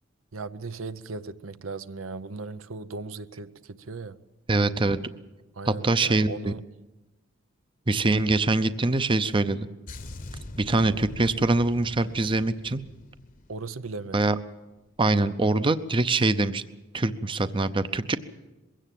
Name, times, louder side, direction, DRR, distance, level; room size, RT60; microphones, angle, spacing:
voice 1, 0.3-4.2 5.6-6.6 13.5-14.2, right 3 dB, 85° right, 0.7 m, -37 dB
voice 2, 4.5-5.0 5.6-6.5 7.9-9.7 10.6-12.8 14.1-14.4 15.0-16.6 16.9-18.2, right 2 dB, 25° right, 0.6 m, -24 dB
sound 1, 9.9-14.4 14.7-15.0, left 2 dB, 40° left, 0.9 m, -43 dB
22.0 x 16.5 x 7.6 m
head